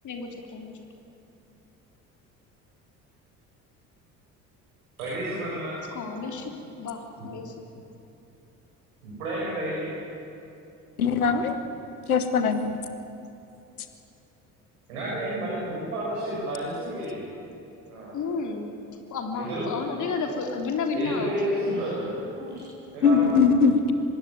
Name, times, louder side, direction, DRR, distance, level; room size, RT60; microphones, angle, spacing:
voice 1, 0.0-0.7 5.9-7.6 18.1-18.7 19.1-21.4, left 4 dB, 40° left, 3 dB, 3.4 m, -32 dB
voice 2, 5.0-5.8 9.0-9.8 14.9-17.3 17.8-18.4 19.3-19.7 20.9-22.5 22.9-23.3, right 1 dB, 70° right, -6 dB, 7.3 m, -31 dB
voice 3, 11.0-11.6 12.1-12.7 23.0-23.9, left 5 dB, 75° left, 8 dB, 1.9 m, -21 dB
25.0 x 21.0 x 9.2 m, 2.8 s
figure-of-eight pair, 55°, 44 cm